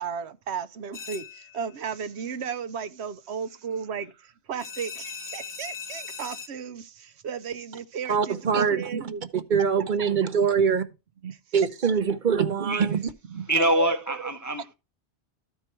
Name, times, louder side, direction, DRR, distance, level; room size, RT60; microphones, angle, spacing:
voice 1, 0.0-9.3 9.8-10.1 11.2-11.4 12.0-12.2 12.5-12.6 12.9-13.0 13.3-14.3, right 7 dB, 75° right, 1.0 m, -35 dB
sound 1, 0.9-1.8 4.6-6.5, left 6 dB, 55° left, 0.9 m, -39 dB
voice 2, 8.1-8.8 9.5-10.8 11.5-13.1, right 6 dB, 50° right, 0.9 m, -23 dB
voice 3, 13.5-14.7, right 1 dB, 20° left, 0.6 m, -24 dB
13.5 x 4.6 x 4.4 m
omnidirectional pair, 1.1 m